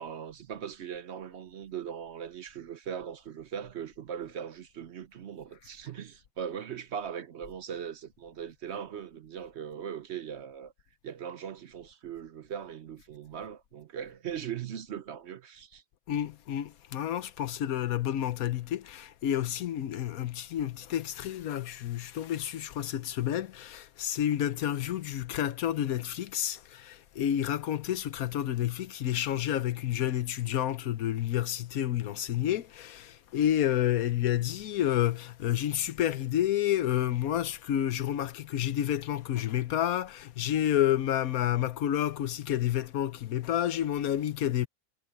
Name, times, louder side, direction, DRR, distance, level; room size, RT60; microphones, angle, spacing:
voice 1, 0.0-10.7 11.0-15.8, right 8 dB, 60° right, 0.9 m, -39 dB
voice 2, 16.1-44.7, left 11 dB, 85° left, 1.2 m, -30 dB
omnidirectional pair, 1.5 m